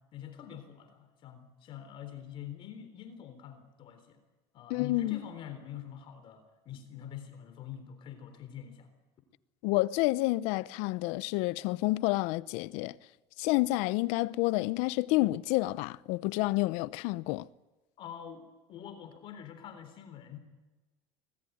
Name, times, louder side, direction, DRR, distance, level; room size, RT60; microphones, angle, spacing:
voice 1, 0.1-4.2 4.5-8.9 18.0-20.4, left 9 dB, 45° left, 3.7 m, -45 dB
voice 2, 4.7-5.2 9.6-12.9 13.4-17.5, left 19 dB, 70° left, 0.8 m, -29 dB
25.5 x 19.5 x 9.4 m
cardioid pair, 130°, 12 cm